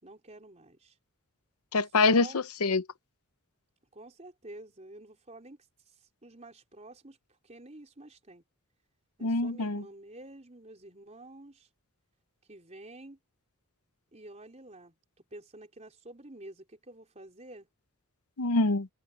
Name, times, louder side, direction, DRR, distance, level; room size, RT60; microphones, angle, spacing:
voice 1, 0.0-1.0 2.1-2.4 3.9-8.4 9.2-11.7 12.5-13.2 14.1-15.0 15.3-17.7, right 2 dB, 30° right, 4.1 m, -49 dB
voice 2, 1.7-2.8 9.2-9.8 18.4-18.9, left 3 dB, 90° left, 0.9 m, -25 dB
head